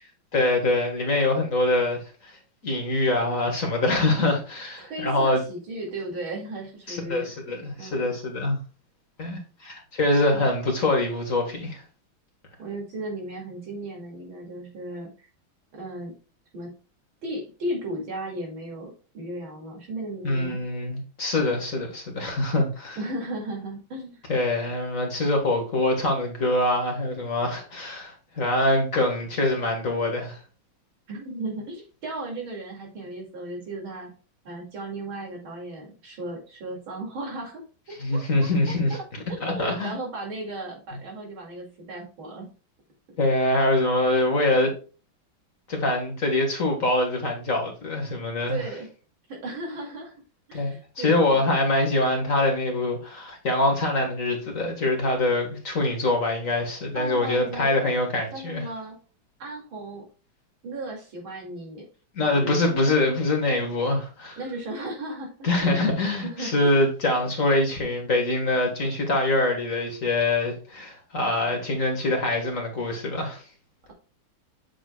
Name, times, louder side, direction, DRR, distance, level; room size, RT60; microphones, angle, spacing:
voice 1, 0.3-2.4 2.6-5.4 6.9-8.6 9.2-11.8 20.2-23.0 24.3-30.4 38.0-39.0 39.4-39.9 43.2-44.7 45.7-48.6 50.5-58.6 62.1-64.4 65.4-73.4, left 2 dB, 40° left, 1.8 m, -24 dB
voice 2, 4.8-7.3 7.8-8.1 10.3-10.4 12.6-15.3 15.7-16.1 16.5-16.7 17.2-20.6 23.0-24.2 31.1-34.1 34.4-37.6 38.1-38.5 38.9-39.0 39.4-42.5 43.1-43.2 48.5-48.9 49.3-50.2 50.5-51.6 56.9-57.7 58.3-59.0 59.4-60.0 60.6-61.9 62.2-62.8 64.4-65.9 66.2-66.8, right 2 dB, 75° right, 3.2 m, -35 dB
8.4 x 6.9 x 2.3 m
omnidirectional pair, 2.2 m